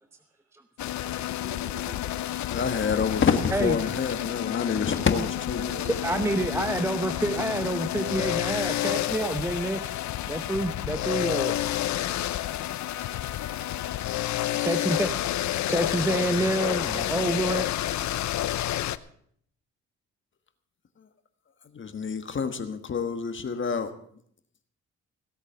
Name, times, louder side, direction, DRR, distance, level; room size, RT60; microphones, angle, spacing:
voice 1, 0.1-0.5 1.0-2.2 5.5-7.0 10.8-10.9, right 2 dB, 55° right, 5 dB, 4.2 m, -46 dB
sound 1, 0.8-19.0, left 13 dB, 65° left, 0.7 m, -30 dB
voice 2, 2.5-5.6 21.7-23.9, left 6 dB, 40° left, 8 dB, 1.4 m, -27 dB
voice 3, 6.0-9.8 10.3-11.5 13.0-13.1 13.6-13.7 14.6-15.4 15.7-17.7, right 1 dB, 10° right, 9 dB, 0.8 m, -28 dB
17.0 x 8.2 x 6.8 m, 0.64 s
cardioid pair, 90°, 30 cm